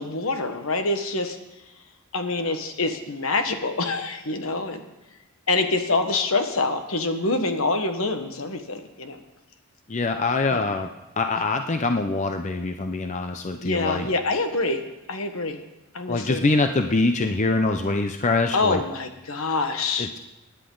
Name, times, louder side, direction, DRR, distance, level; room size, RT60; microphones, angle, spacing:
voice 1, 0.0-1.4 2.1-4.8 5.5-9.2 10.5-10.6 13.6-14.8 15.1-15.6 15.9-16.5 18.5-20.1, left 3 dB, 70° left, 6 dB, 1.4 m, -26 dB
voice 2, 9.9-10.9 11.2-14.1 16.1-18.8 20.0-20.2, left 3 dB, 35° left, 6 dB, 0.6 m, -24 dB
25.0 x 10.0 x 3.9 m, 0.99 s
head